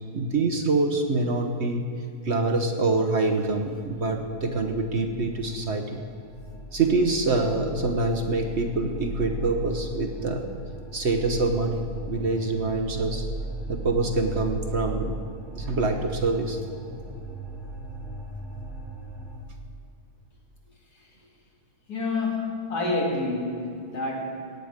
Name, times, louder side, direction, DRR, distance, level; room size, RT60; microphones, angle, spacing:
voice 1, 0.1-1.9 2.2-6.0 6.7-10.5 10.9-13.2 13.7-15.1 15.6-16.6, right 3 dB, 50° right, 4 dB, 1.1 m, -25 dB
sound 1, 3.5-19.4, right 2 dB, 30° left, 2.2 m, -38 dB
voice 2, 21.9-24.5, left 2 dB, 75° left, -1 dB, 2.7 m, -28 dB
17.5 x 9.3 x 5.1 m, 2.5 s
omnidirectional pair, 1.7 m